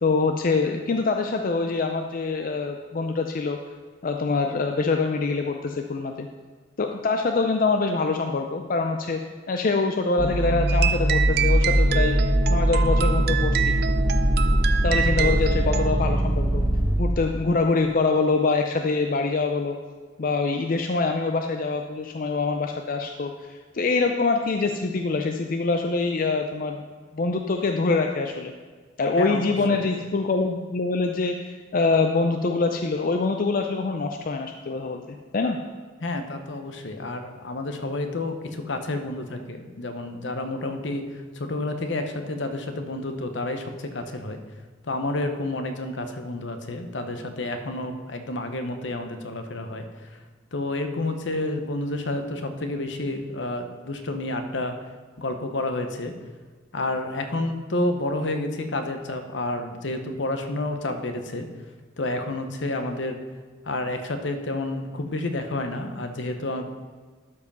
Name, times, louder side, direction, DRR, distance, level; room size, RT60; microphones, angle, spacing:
voice 1, 0.0-3.6 4.0-6.3 6.8-9.2 9.5-13.7 14.8-16.6 17.0-19.8 20.2-23.3 23.7-26.9 27.1-28.5 29.0-35.6, left 3 dB, 50° left, 4 dB, 0.5 m, -24 dB
sound 1, 10.2-17.0, right 1 dB, 30° right, 1.4 m, -21 dB
sound 2, 10.7-16.0, right 9 dB, 55° right, 0.4 m, -28 dB
voice 2, 29.2-29.8 36.0-44.4 44.9-49.8 50.5-54.7 55.2-56.1 56.7-61.5 62.0-63.2 63.6-66.7, left 2 dB, 70° left, 7 dB, 0.9 m, -30 dB
12.0 x 4.8 x 5.5 m, 1.4 s
head